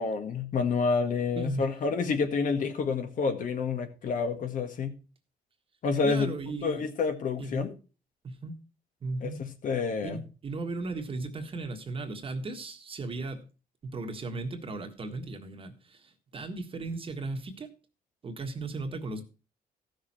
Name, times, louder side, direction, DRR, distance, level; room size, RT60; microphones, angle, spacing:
voice 1, 0.0-4.9 5.8-7.7 9.2-10.2, left 5 dB, 60° left, 1.8 m, -29 dB
voice 2, 1.3-1.7 6.0-6.8 7.4-7.7 8.2-8.5 9.0-9.4 10.0-13.4 13.8-17.7 18.2-19.2, right 3 dB, 35° right, 1.6 m, -36 dB
15.0 x 6.4 x 4.4 m
cardioid pair, 125°, 15 cm